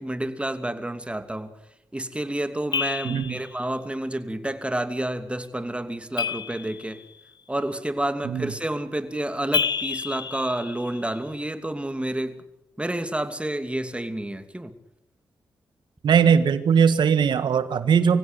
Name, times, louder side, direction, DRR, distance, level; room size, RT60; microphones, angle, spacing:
voice 1, 0.0-1.5 1.9-7.0 7.5-12.4 12.8-14.7, right 1 dB, 15° right, 9 dB, 2.8 m, -29 dB
sound 1, 2.7-3.5 6.2-7.2 9.5-11.2, left 6 dB, 65° left, 1.2 m, -29 dB
voice 2, 3.0-3.4 8.2-8.5 16.0-18.2, right 7 dB, 75° right, 12 dB, 1.6 m, -20 dB
24.5 x 16.0 x 8.3 m, 0.85 s
supercardioid pair, 45°, 8 cm